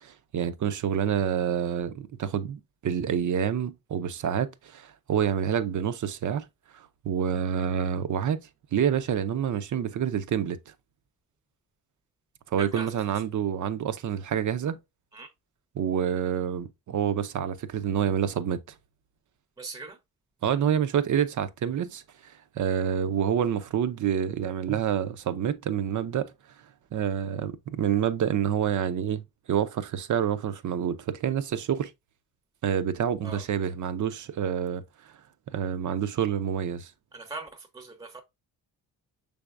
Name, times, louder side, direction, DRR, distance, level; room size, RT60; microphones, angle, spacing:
voice 1, 0.0-6.4 6.7-8.4 8.7-10.6 12.5-14.8 15.7-18.6 20.4-26.3 26.9-31.9 32.6-34.8 35.5-36.9, right 8 dB, 55° right, 0.6 m, -28 dB
voice 2, 19.6-19.9 33.2-33.4 37.1-37.5 37.7-38.2, right 3 dB, 10° right, 0.7 m, -39 dB
6.0 x 3.5 x 2.4 m
cardioid pair, 75°, 36 cm